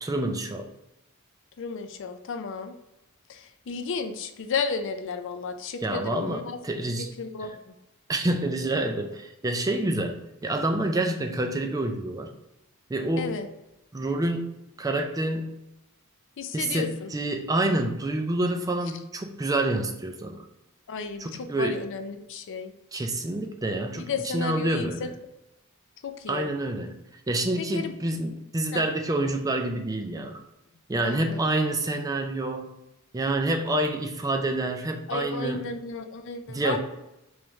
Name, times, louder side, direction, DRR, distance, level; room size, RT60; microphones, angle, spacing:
voice 1, 0.0-0.7 5.8-7.1 7.4-7.5 8.1-12.3 12.9-13.4 13.9-14.5 14.8-15.5 16.5-20.4 21.2-21.9 22.9-25.1 26.3-27.0 27.3-30.4 30.9-32.7 33.1-35.7 36.5-36.8, right 2 dB, 15° right, 5 dB, 0.4 m, -28 dB
voice 2, 1.6-2.7 3.3-6.6 7.2-7.5 13.2-13.5 16.4-17.1 20.9-22.7 24.1-25.1 26.0-26.5 27.7-27.9 28.7-28.8 31.0-31.4 35.1-36.8, left 4 dB, 60° left, 7 dB, 0.4 m, -33 dB
3.1 x 3.1 x 3.5 m, 0.91 s
head